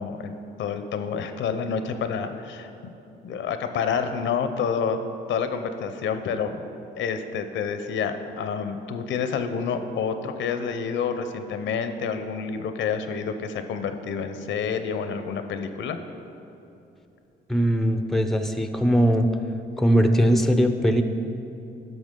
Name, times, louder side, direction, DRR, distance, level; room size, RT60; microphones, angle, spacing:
voice 1, 0.0-2.9 3.2-5.0 5.3-6.6 7.0-16.0, left 6 dB, 75° left, 8 dB, 0.6 m, -28 dB
voice 2, 17.5-19.3 19.8-21.0, equal, ahead, 7 dB, 0.5 m, -20 dB
11.5 x 6.0 x 3.7 m, 2.8 s
cardioid pair, 90°, 20 cm